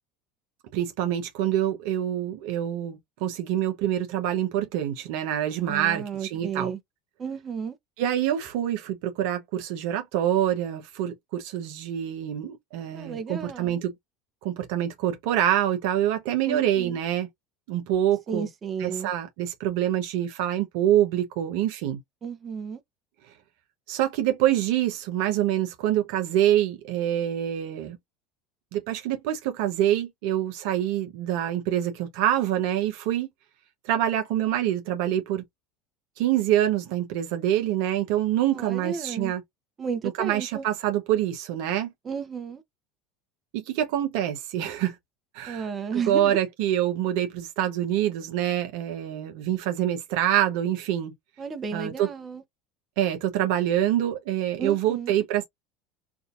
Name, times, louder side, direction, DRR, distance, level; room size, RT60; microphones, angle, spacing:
voice 1, 0.7-6.7 8.0-13.9 14.4-17.3 17.7-18.5 18.8-22.0 23.9-28.0 28.7-33.3 33.8-35.4 36.2-39.4 40.2-41.9 43.5-45.0 45.3-51.1 51.7-52.1 53.0-55.4, right 11 dB, 65° right, 0.9 m, -26 dB
voice 2, 5.7-6.8 7.2-7.7 12.9-13.8 16.5-17.0 18.3-19.1 22.2-22.8 38.5-39.3 39.8-40.6 42.0-42.6 45.5-46.4 51.4-52.4 54.6-55.1, right 6 dB, 30° right, 0.9 m, -33 dB
3.6 x 2.6 x 2.5 m
hypercardioid pair, 75°, 0 cm